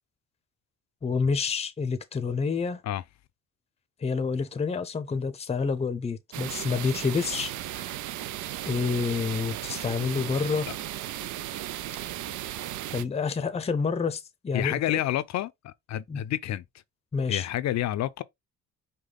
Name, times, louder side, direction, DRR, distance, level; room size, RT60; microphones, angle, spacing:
voice 1, 1.0-2.8 4.0-7.9 8.6-10.7 12.9-14.8 16.1-16.2 17.1-17.5, left 5 dB, 20° left, 0.6 m, -28 dB
sound 1, 6.3-13.0, right 13 dB, 75° right, 0.5 m, -35 dB
voice 2, 14.5-16.6 17.3-18.2, left 13 dB, 65° left, 0.5 m, -29 dB
5.1 x 2.2 x 3.8 m
cardioid pair, 90°, 30 cm